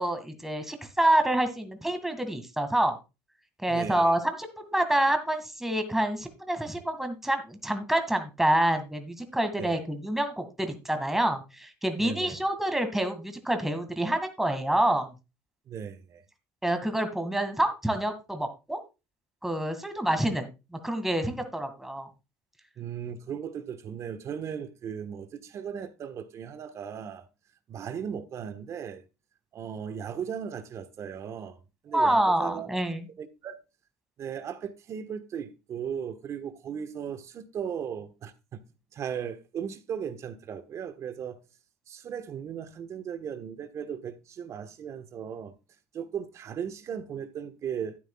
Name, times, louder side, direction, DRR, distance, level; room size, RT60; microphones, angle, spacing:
voice 1, 0.0-3.0 3.6-15.1 16.6-18.8 19.4-22.1 31.9-33.1, right 1 dB, 5° right, 2.0 m, -27 dB
voice 2, 3.7-4.1 9.6-9.8 12.0-12.4 15.7-16.2 22.8-27.2 27.7-29.0 29.5-31.6 31.8-32.7 33.2-33.6 34.2-38.6 38.9-41.4 41.9-45.5 45.9-48.0, right 8 dB, 45° right, 1.3 m, -37 dB
12.5 x 9.3 x 2.3 m
supercardioid pair, 85°, 7 cm